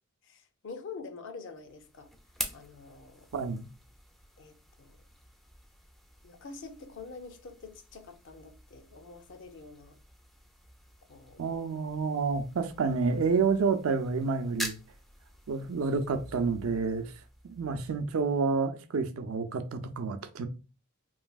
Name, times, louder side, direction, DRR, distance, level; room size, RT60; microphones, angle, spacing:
voice 1, 0.2-2.1 2.5-3.3 4.4-5.0 6.2-10.0 11.1-11.5 11.7-11.8, left 4 dB, 60° left, 0.5 m, -46 dB
sound 1, 1.5-18.5, equal, ahead, 0.3 m, -46 dB
voice 2, 3.3-3.7 11.4-14.8 15.5-17.1 17.4-20.5, right 4 dB, 70° right, 0.4 m, -29 dB
3.1 x 2.6 x 2.3 m
head